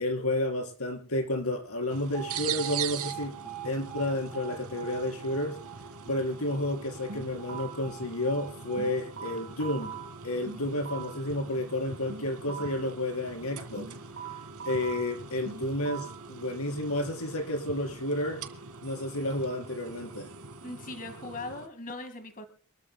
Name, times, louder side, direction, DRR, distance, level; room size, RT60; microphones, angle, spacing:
voice 1, 0.0-3.4 3.6-5.6 6.1-10.0 10.2-13.9 14.7-18.4 18.8-20.3, left 1 dB, 85° left, 3 dB, 4.3 m, -31 dB
sound 1, 1.9-21.7, right 6 dB, 85° right, 2.0 m, -42 dB
Alarm, 2.1-10.2, right 11 dB, ahead, 5.3 m, -45 dB
sound 2, 7.1-7.9 8.8-11.3 12.1-12.9 13.8-16.3, right 7 dB, 60° right, 3.7 m, -42 dB
voice 2, 20.6-22.5, left 2 dB, 40° left, 7 dB, 1.8 m, -40 dB
27.0 x 13.5 x 2.2 m, 0.42 s
head